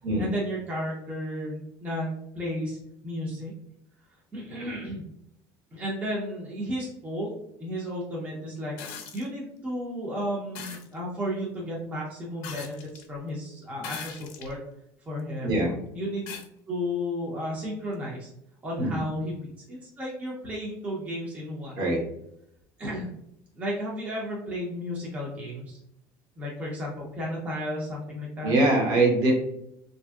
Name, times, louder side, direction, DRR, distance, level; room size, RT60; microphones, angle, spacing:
voice 1, 0.2-2.8 3.0-3.5 4.3-5.0 5.7-7.3 7.6-14.6 15.1-15.6 15.9-18.3 18.6-21.8 22.8-23.1 23.6-25.8 26.4-28.5, equal, 20° right, -4 dB, 0.6 m, -33 dB
sound 1, 8.8-9.3 10.6-10.9 12.4-13.1 13.8-14.5 15.2-15.3 16.3-16.5 17.9-18.0, left 6 dB, 85° left, 0.5 m, -39 dB
voice 2, 15.4-15.7 18.8-19.0 21.8-22.0 28.4-29.3, right 2 dB, 50° right, 0 dB, 0.9 m, -22 dB
3.2 x 2.6 x 2.3 m, 0.77 s
cardioid pair, 150°, 8 cm